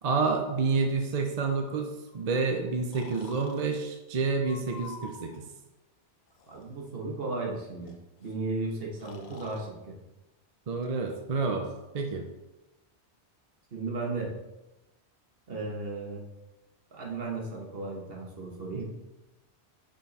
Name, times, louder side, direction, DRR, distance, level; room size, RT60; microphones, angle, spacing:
voice 1, 0.0-5.5 10.7-11.7 11.9-12.2 18.7-18.8, right 4 dB, 45° right, 3 dB, 0.6 m, -29 dB
Breathing, 1.4-2.2 2.9-3.6 4.4-5.4 6.3-6.7 7.9-8.0 8.2-8.3 9.0-9.6, left 4 dB, 70° left, 0.9 m, -47 dB
voice 2, 6.5-7.9 8.2-9.9 13.7-14.3 15.5-16.2 16.9-18.9, right 3 dB, 60° right, -2 dB, 1.5 m, -35 dB
5.7 x 4.5 x 4.1 m, 1.0 s
omnidirectional pair, 1.1 m